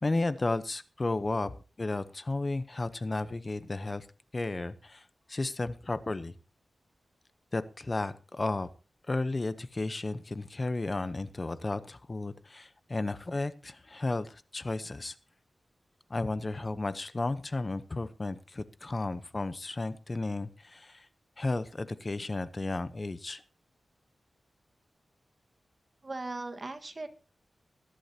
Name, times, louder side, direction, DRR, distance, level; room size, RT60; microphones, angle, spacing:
voice 1, 0.0-4.1 4.3-6.3 7.5-8.7 9.1-15.2 16.1-21.1 21.4-23.4, left 2 dB, 30° left, 13 dB, 0.8 m, -33 dB
voice 2, 26.0-27.1, right 2 dB, 30° right, 7 dB, 1.5 m, -38 dB
20.5 x 11.5 x 2.8 m, 0.34 s
wide cardioid pair, 150°, 0 cm